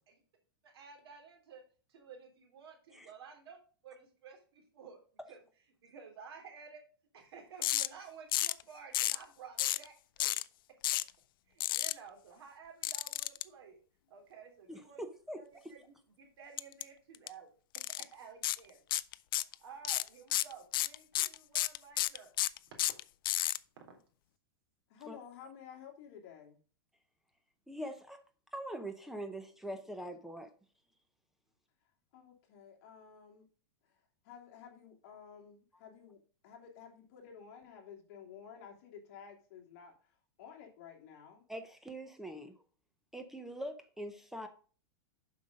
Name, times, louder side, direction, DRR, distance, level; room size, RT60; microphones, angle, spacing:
voice 1, 0.6-1.6 1.9-3.6 3.8-5.0 5.3-5.4 5.8-6.8 7.1-10.3 11.5-13.8 14.1-15.0 15.3-18.8 19.3-22.3 23.9-24.0, right 6 dB, 80° right, 2 dB, 3.5 m, -53 dB
sound 1, 7.6-7.9 8.3-8.6 8.9-9.2 9.6-9.9 10.2-10.4 10.8-11.1 11.6-11.9 12.8-13.4 16.6-16.8 17.1-17.3 17.7-18.0 18.4-18.6 18.9-19.5 19.8-23.6, left 15 dB, 60° left, 0.4 m, -31 dB
voice 2, 14.7-15.4 25.1-25.2 27.7-28.2 28.5-30.5 41.5-42.5 43.1-44.5, right 1 dB, 5° right, 8 dB, 0.6 m, -43 dB
voice 3, 24.9-26.6 32.1-33.4 33.8-41.4, left 7 dB, 45° left, 1 dB, 2.6 m, -53 dB
7.5 x 5.5 x 5.0 m, 0.40 s
supercardioid pair, 165°, 13 cm